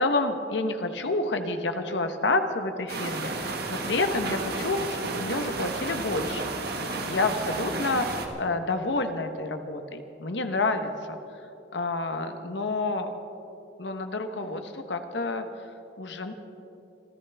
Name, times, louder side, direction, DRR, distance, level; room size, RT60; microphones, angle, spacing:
voice 1, 0.0-6.4 7.0-11.2 11.7-13.1 13.8-15.5 16.0-16.3, left 2 dB, 75° left, 7 dB, 1.1 m, -29 dB
sound 1, 2.9-8.3, right 3 dB, 60° right, 1.6 m, -32 dB
27.0 x 14.0 x 3.5 m, 2.9 s
head